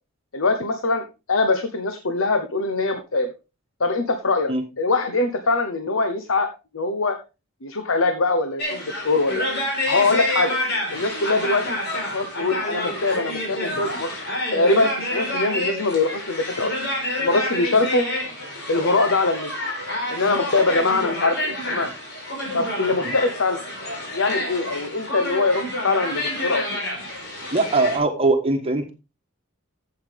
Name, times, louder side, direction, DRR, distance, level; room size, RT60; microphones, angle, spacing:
voice 1, 0.3-3.3 3.8-6.5 6.7-7.2 7.6-9.5 9.9-10.6 10.9-11.8 12.1-14.2 14.5-16.7 17.2-18.1 18.7-19.5 20.1-21.9 22.5-23.6 24.1-26.8, left 3 dB, 70° left, 7 dB, 1.0 m, -23 dB
sound 1, 8.6-28.0, left 1 dB, 55° left, 4.5 m, -28 dB
voice 2, 27.5-28.9, right 3 dB, 30° right, 4 dB, 1.4 m, -21 dB
12.0 x 8.0 x 3.6 m, 0.29 s
head